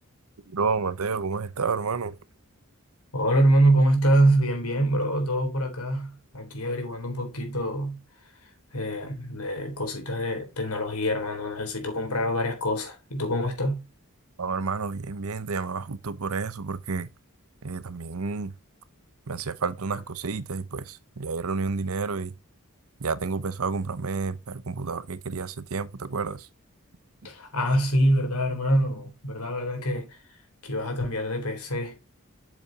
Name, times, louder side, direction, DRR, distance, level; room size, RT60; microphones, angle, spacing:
voice 1, 0.5-2.1 14.4-17.1 17.6-18.5 19.3-22.3 23.0-26.5, right 4 dB, 75° right, 0.8 m, -30 dB
voice 2, 3.1-8.0 8.7-13.8 27.2-30.2 30.6-32.0, right 1 dB, 85° left, 3.7 m, -25 dB
8.3 x 7.1 x 2.9 m
head